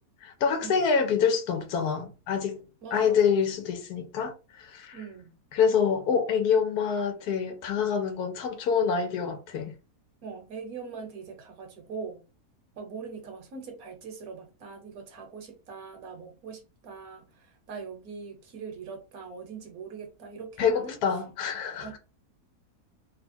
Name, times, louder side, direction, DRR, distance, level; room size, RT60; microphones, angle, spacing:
voice 1, 0.2-2.6 2.9-5.0 5.5-9.7 20.6-22.0, left 6 dB, 85° left, 1.3 m, -26 dB
voice 2, 2.8-3.3 4.9-5.4 10.2-12.2 12.7-21.0 21.8-22.0, right 5 dB, 70° right, 1.3 m, -42 dB
3.2 x 2.3 x 4.2 m
omnidirectional pair, 1.7 m